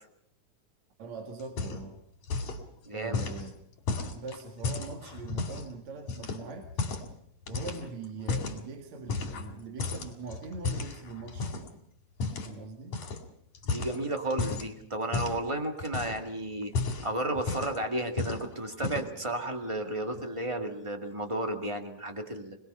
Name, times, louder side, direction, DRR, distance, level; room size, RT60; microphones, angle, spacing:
voice 1, 1.0-2.0 2.9-3.5 4.2-6.7 7.5-11.7 12.4-13.0, right 3 dB, 65° right, 3 dB, 3.3 m, -42 dB
sound 1, 1.4-2.0 2.2-2.6 3.1-5.7 6.1-7.1 7.5-8.6 9.1-9.5 9.8-11.7 12.2-12.5 12.9-13.2 13.5-14.7 15.1-15.4 15.8-16.3 16.6-17.8 18.2-18.4 18.7-19.2, left 4 dB, 70° left, 4.1 m, -33 dB
voice 2, 2.8-3.3 13.6-16.7 17.0-22.6, right 1 dB, 10° right, 5 dB, 1.7 m, -33 dB
25.0 x 20.5 x 5.6 m, 0.69 s
omnidirectional pair, 3.4 m